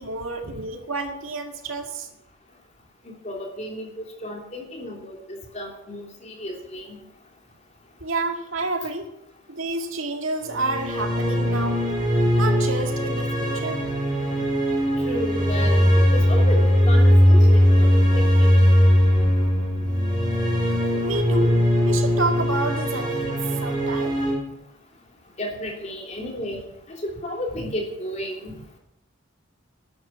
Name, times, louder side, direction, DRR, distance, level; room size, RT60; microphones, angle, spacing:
voice 1, 0.0-2.1 8.0-9.1 9.5-11.8 12.3-13.8 21.0-24.2, right 2 dB, 70° right, 5 dB, 1.9 m, -29 dB
voice 2, 3.2-7.0 15.1-18.7 25.4-26.6 26.9-28.5, left 1 dB, 35° left, 1 dB, 3.2 m, -33 dB
sound 1, 10.5-24.3, equal, 20° right, 5.4 m, -19 dB
11.5 x 11.0 x 7.5 m, 0.82 s
head